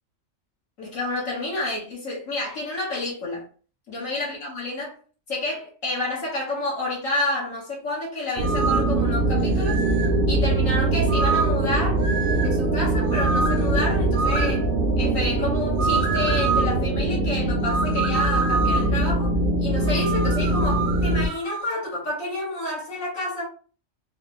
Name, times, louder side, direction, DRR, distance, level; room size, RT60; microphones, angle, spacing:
voice 1, 0.8-3.4 3.9-5.0 5.3-9.8 10.3-12.0 12.4-14.7 15.0-23.5, left 2 dB, 75° left, 1.9 m, -29 dB
sound 1, 8.4-21.3, right 2 dB, 55° right, 0.7 m, -22 dB
sound 2, 8.4-8.9 9.7-10.2 11.1-11.6 12.0-12.5 13.1-13.7 14.1-14.6 15.8-16.7 17.6-19.0 19.8-21.7, right 4 dB, 85° right, 1.1 m, -27 dB
4.6 x 2.2 x 3.1 m
omnidirectional pair, 1.4 m